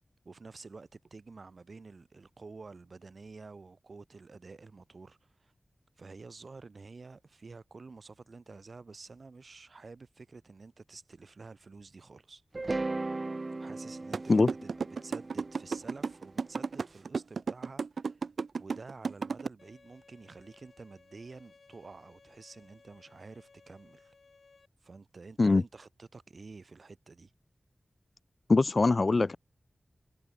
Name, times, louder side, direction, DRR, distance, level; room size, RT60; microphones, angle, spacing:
voice 1, 0.2-5.5 6.0-12.4 13.6-18.2 18.6-24.1 24.8-27.3, right 4 dB, 65° right, 4.4 m, -50 dB
sound 1, 12.5-16.7, right 2 dB, 45° right, 0.7 m, -37 dB
sound 2, 14.1-19.5, right 5 dB, 80° right, 0.7 m, -33 dB
Bowed string instrument, 19.6-24.7, left 4 dB, 70° left, 2.7 m, -61 dB
voice 2, 28.5-29.4, left 3 dB, 55° left, 0.3 m, -22 dB
cardioid pair, 50°, 0 cm